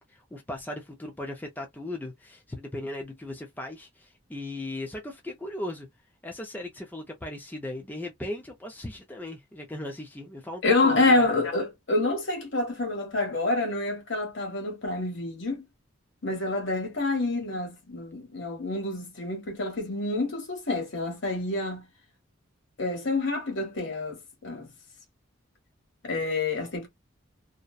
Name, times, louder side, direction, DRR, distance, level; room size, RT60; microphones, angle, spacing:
voice 1, 0.1-5.9 6.2-11.3, left 1 dB, 10° left, 0.4 m, -37 dB
voice 2, 10.6-15.6 16.2-21.8 22.8-24.7 26.0-26.9, left 2 dB, 60° left, 1.2 m, -27 dB
2.6 x 2.0 x 2.3 m
head